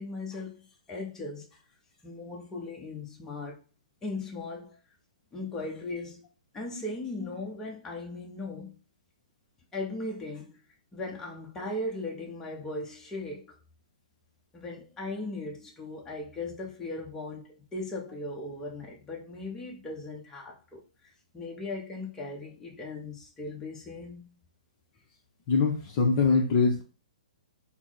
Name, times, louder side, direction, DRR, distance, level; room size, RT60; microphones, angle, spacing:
voice 1, 0.0-1.5 2.0-3.6 4.0-4.8 5.3-6.3 6.5-8.7 9.7-10.5 10.9-13.5 14.5-20.8 21.3-24.4, left 2 dB, 10° left, 0.9 m, -38 dB
voice 2, 25.5-26.8, left 4 dB, 40° left, 0.7 m, -23 dB
4.4 x 2.1 x 3.9 m
hypercardioid pair, 140°, 4 cm